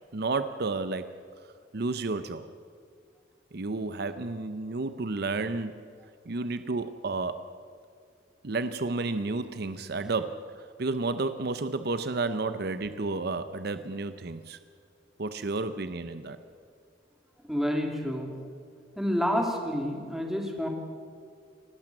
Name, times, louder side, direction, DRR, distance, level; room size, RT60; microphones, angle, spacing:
voice 1, 0.1-1.1 1.7-2.5 3.5-5.8 6.3-7.5 8.4-14.6 15.2-16.4, right 3 dB, 60° right, 11 dB, 0.7 m, -31 dB
voice 2, 17.5-18.3 19.0-20.7, equal, ahead, 2 dB, 2.7 m, -29 dB
28.5 x 12.0 x 7.7 m, 2.3 s
head